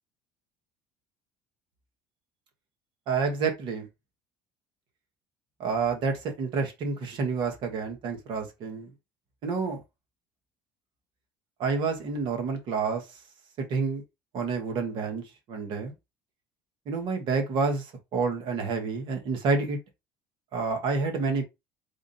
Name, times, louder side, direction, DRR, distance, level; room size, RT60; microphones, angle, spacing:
voice 1, 3.1-3.9 5.6-8.9 9.4-9.8 11.6-13.0 13.6-14.0 14.3-15.2 15.5-15.9 16.8-19.8 20.5-21.4, right 4 dB, 65° right, 1.5 m, -29 dB
3.6 x 2.5 x 4.1 m
supercardioid pair, 90°, 9 cm